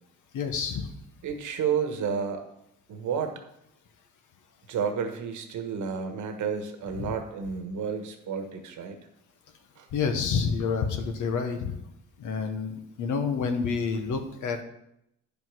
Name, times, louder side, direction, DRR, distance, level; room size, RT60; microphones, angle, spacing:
voice 1, 0.3-0.9 7.0-7.1 9.9-11.8 12.2-14.6, left 5 dB, 80° left, 5 dB, 1.3 m, -28 dB
voice 2, 1.2-2.4 2.9-3.4 4.7-9.0 9.8-9.9, right 6 dB, 75° right, 6 dB, 1.4 m, -31 dB
9.7 x 5.3 x 6.2 m, 0.80 s
cardioid pair, 90°, 30 cm